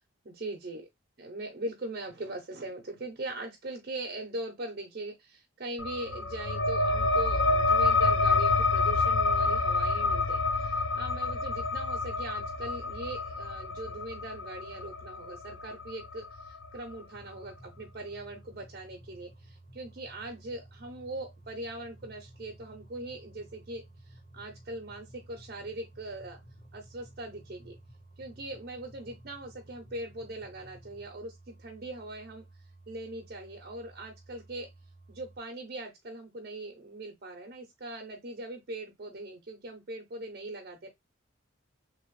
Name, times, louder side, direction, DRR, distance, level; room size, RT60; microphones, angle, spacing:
voice 1, 0.3-0.9 1.2-26.4 26.7-27.8 28.2-32.4 32.9-34.7 35.1-40.9, right 2 dB, 50° right, 0.7 m, -41 dB
sound 1, 5.8-16.9, left 3 dB, 70° left, 0.5 m, -28 dB
sound 2, 17.1-35.4, right 1 dB, 40° left, 1.6 m, -54 dB
3.3 x 2.9 x 3.1 m
head